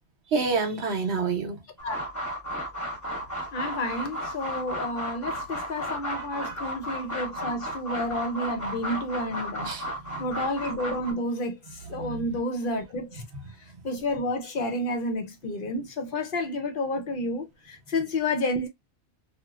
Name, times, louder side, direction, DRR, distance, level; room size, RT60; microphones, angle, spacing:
voice 1, 0.3-1.6 6.1-6.5 9.6-9.9 12.0-12.2, right 4 dB, 75° right, 1.0 m, -28 dB
sound 1, 1.8-11.1, equal, 15° left, 0.8 m, -34 dB
voice 2, 3.5-9.7 10.2-11.6 11.9-13.2 13.8-18.7, left 1 dB, 55° left, 0.7 m, -30 dB
2.9 x 2.1 x 2.3 m
omnidirectional pair, 1.1 m